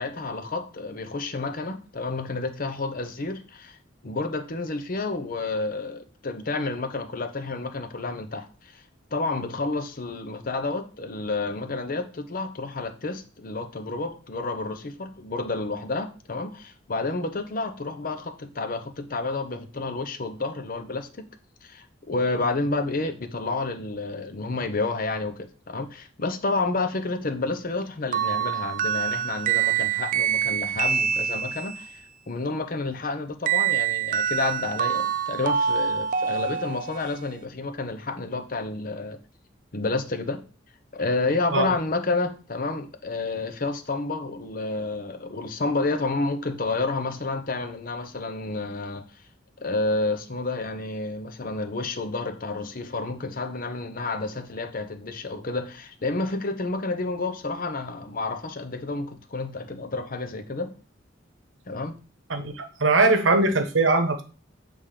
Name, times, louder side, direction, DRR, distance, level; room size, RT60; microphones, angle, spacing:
voice 1, 0.0-3.8 4.0-8.8 9.1-21.2 21.6-32.0 32.3-39.2 39.7-40.4 40.9-49.0 49.6-60.7 61.7-62.0, left 3 dB, 45° left, 0.8 m, -30 dB
sound 1, 28.1-31.9 33.5-37.2, right 8 dB, 45° right, 0.4 m, -26 dB
voice 2, 62.3-64.2, right 2 dB, 75° right, 1.0 m, -21 dB
7.3 x 3.6 x 4.9 m
head